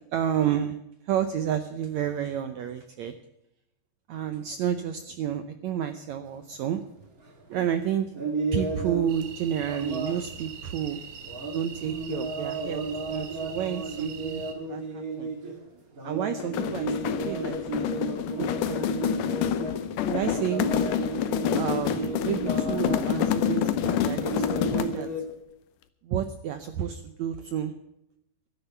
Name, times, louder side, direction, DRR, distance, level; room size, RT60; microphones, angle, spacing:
voice 1, 0.1-0.8 1.1-3.1 4.1-6.8 7.5-8.1 8.5-11.0 11.5-14.4 14.7-15.3 16.0-17.8 18.1-18.9 20.0-20.7 21.6-25.1 26.0-27.7, right 9 dB, 85° right, 9 dB, 1.6 m, -30 dB
sound 1, 6.7-6.8 7.1-7.6 8.1-9.3 9.6-10.4 11.2-15.6 16.0-19.9 20.2-23.7 24.1-25.2, right 3 dB, 35° right, 1.6 m, -33 dB
sound 2, 9.1-14.5, right 7 dB, 60° right, 3.0 m, -42 dB
sound 3, 16.4-25.1, left 9 dB, 75° left, 2.1 m, -28 dB
13.5 x 10.5 x 7.0 m, 0.82 s
omnidirectional pair, 4.2 m